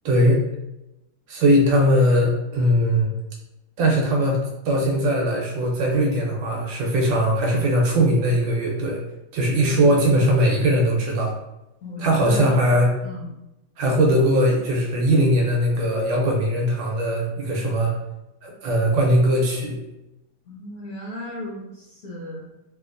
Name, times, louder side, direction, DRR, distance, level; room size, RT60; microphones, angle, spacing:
voice 1, 0.0-0.4 1.3-3.1 3.8-9.0 9.3-11.3 12.0-12.9 13.8-17.9 18.4-19.8, equal, 75° right, -1 dB, 1.3 m, -20 dB
voice 2, 11.8-12.5 13.0-13.3 20.5-22.5, left 1 dB, 60° left, -7 dB, 1.0 m, -35 dB
3.1 x 2.9 x 2.4 m, 0.91 s
omnidirectional pair, 2.3 m